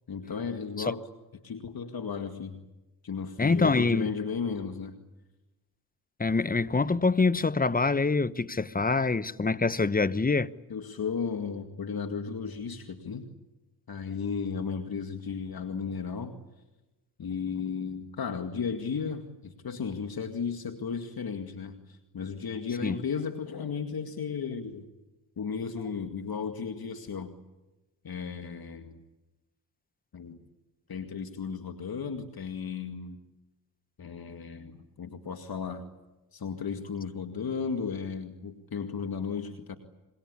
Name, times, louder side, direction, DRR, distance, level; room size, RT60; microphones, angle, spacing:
voice 1, 0.1-1.1 1.4-2.6 3.0-5.0 10.7-13.3 13.9-16.4 17.2-24.9 25.4-27.3 28.0-29.0 30.1-30.4 30.9-33.2 34.0-35.8 36.3-39.8, left 6 dB, 50° left, 2.2 m, -34 dB
voice 2, 3.4-4.1 6.2-10.5 22.8-23.0, left 3 dB, 20° left, 1.1 m, -25 dB
26.5 x 23.5 x 8.5 m
supercardioid pair, 50°, 46 cm